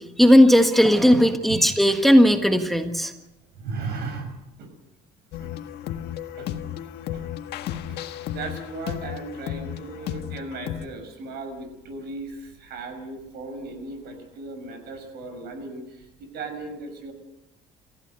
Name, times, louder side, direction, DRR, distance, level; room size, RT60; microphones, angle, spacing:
voice 1, 0.0-3.1, equal, ahead, 5 dB, 1.6 m, -16 dB
voice 2, 3.5-4.3 4.6-4.7 5.4-5.5 6.4-6.6 7.1-7.2 7.9-8.0 8.3-17.1, right 3 dB, 75° right, 8 dB, 5.9 m, -36 dB
sound 1, 5.3-10.9, left 11 dB, 80° left, 1.6 m, -34 dB
28.0 x 15.0 x 6.6 m, 0.93 s
cardioid pair, 110°, 17 cm